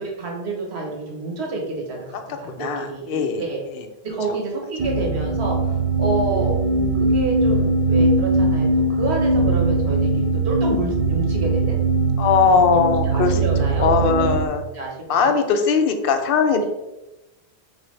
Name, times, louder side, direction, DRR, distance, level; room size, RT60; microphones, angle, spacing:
voice 1, 0.0-3.6 4.0-6.5 6.9-11.8 12.4-14.4 14.7-15.4 16.6-16.7, right 3 dB, 80° right, 0 dB, 1.3 m, -28 dB
voice 2, 2.6-3.4 3.7-3.8 6.3-7.1 12.2-13.4 13.8-14.6 15.1-16.6, left 5 dB, 65° left, 7 dB, 0.7 m, -20 dB
sound 1, 4.8-14.5, right 2 dB, 50° right, 0.4 m, -20 dB
4.6 x 3.3 x 3.2 m, 0.99 s
omnidirectional pair, 1.1 m